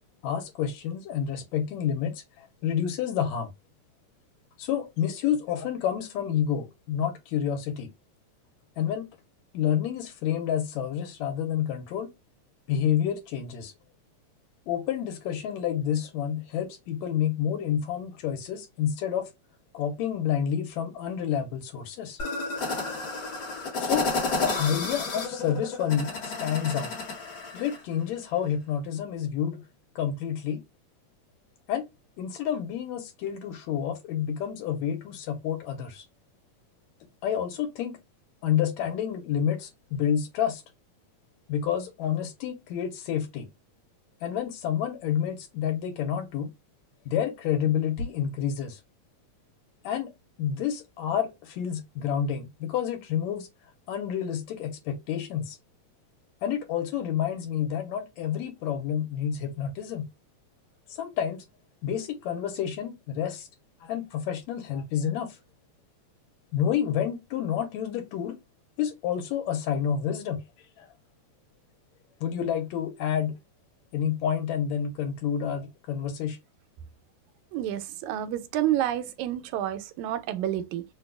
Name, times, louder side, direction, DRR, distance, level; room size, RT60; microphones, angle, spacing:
voice 1, 0.2-3.5 4.6-7.9 8.8-9.1 9.5-12.1 12.7-13.7 14.7-19.3 19.7-22.2 23.8-26.9 27.5-29.6 30.0-30.6 31.7-31.9 32.2-36.1 37.2-38.0 38.4-40.6 41.5-43.5 44.2-46.5 47.1-48.8 49.8-50.1 50.4-53.5 53.9-55.6 56.4-60.1 60.9-61.4 61.8-63.5 63.8-65.4 66.5-68.4 68.8-70.4 70.8-70.9 72.2-73.3 73.9-76.4, left 9 dB, 75° left, 2.0 m, -29 dB
sound 1, 22.2-27.8, left 3 dB, 45° left, 1.4 m, -31 dB
voice 2, 77.5-80.8, right 12 dB, 85° right, 2.0 m, -29 dB
4.5 x 2.3 x 2.3 m
omnidirectional pair, 3.3 m